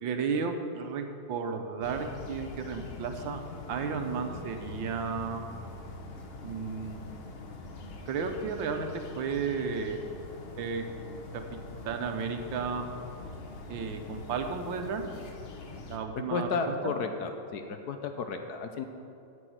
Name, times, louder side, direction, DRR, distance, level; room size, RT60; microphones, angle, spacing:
voice 1, 0.0-3.4 3.7-5.4 6.4-7.1 8.1-10.0 10.6-10.9 11.8-12.9 13.7-15.0 15.9-16.9, right 5 dB, 90° right, 6 dB, 1.7 m, -33 dB
sound 1, 1.8-16.0, left 3 dB, 45° left, 0.8 m, -43 dB
voice 2, 16.3-18.9, left 5 dB, 65° left, 6 dB, 1.2 m, -33 dB
9.7 x 7.1 x 7.8 m, 2.6 s
omnidirectional pair, 2.0 m